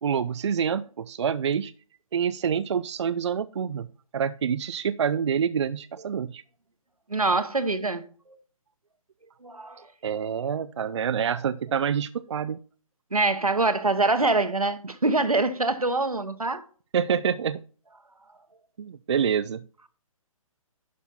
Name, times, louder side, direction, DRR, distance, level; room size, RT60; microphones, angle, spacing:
voice 1, 0.0-1.7 2.1-3.9 4.1-6.4 10.0-12.6 16.9-17.6 18.8-19.6, right 7 dB, 55° right, 0.4 m, -27 dB
voice 2, 7.1-8.1 9.4-9.9 13.1-16.6, right 3 dB, 90° right, 1.1 m, -24 dB
11.0 x 5.4 x 4.2 m
figure-of-eight pair, 140°, 18 cm